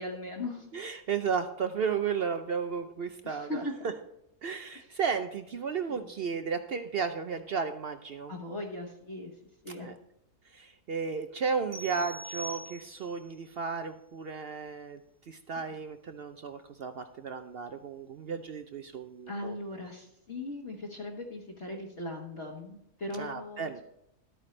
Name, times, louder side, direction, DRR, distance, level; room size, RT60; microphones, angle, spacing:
voice 1, 0.0-0.7 3.2-3.7 5.8-6.0 8.3-9.3 9.6-9.9 19.3-23.8, left 2 dB, 50° left, -3 dB, 1.6 m, -39 dB
voice 2, 0.7-3.6 4.4-8.3 9.8-10.0 10.5-15.0 15.3-19.6 23.1-23.8, right 6 dB, 65° right, 8 dB, 0.6 m, -34 dB
sound 1, 11.7-13.3, right 1 dB, 15° right, 0.8 m, -43 dB
12.5 x 9.0 x 3.2 m, 0.83 s
omnidirectional pair, 1.6 m